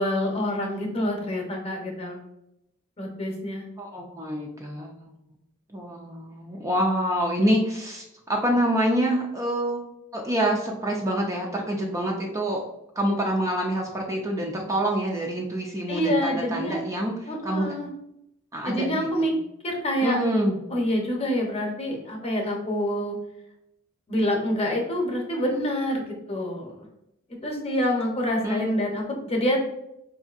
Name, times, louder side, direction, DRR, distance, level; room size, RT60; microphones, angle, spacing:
voice 1, 0.0-2.2 3.0-3.7 15.9-16.8 17.3-17.9 18.6-19.3 19.6-20.2 20.7-23.2 24.1-26.9 27.4-29.6, equal, 30° left, 0 dB, 0.8 m, -26 dB
voice 2, 3.8-5.1 5.7-9.8 10.1-12.6 13.0-17.7 18.5-18.9 19.2-19.3 20.0-20.6 28.4-28.6, equal, 15° right, -1 dB, 0.4 m, -26 dB
4.6 x 2.6 x 2.4 m, 0.83 s
head